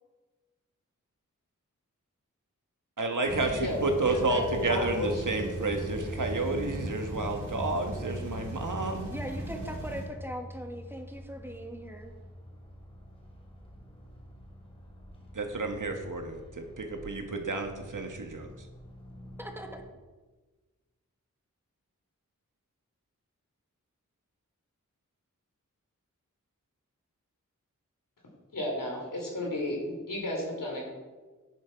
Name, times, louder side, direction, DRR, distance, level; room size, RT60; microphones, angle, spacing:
voice 1, 3.0-9.1 15.3-18.5, right 2 dB, 70° right, 4 dB, 1.5 m, -31 dB
sound 1, 3.2-10.0, right 1 dB, 90° right, 3.3 m, -38 dB
voice 2, 4.3-5.1 5.4-5.5 28.5-30.9, left 1 dB, 80° left, -1 dB, 3.3 m, -33 dB
sound 2, 4.5-19.9, equal, 15° left, 2.5 m, -45 dB
voice 3, 9.1-12.1 19.4-19.8, equal, 5° right, 3 dB, 1.6 m, -40 dB
10.5 x 8.3 x 4.7 m, 1.3 s
wide cardioid pair, 50°, 32 cm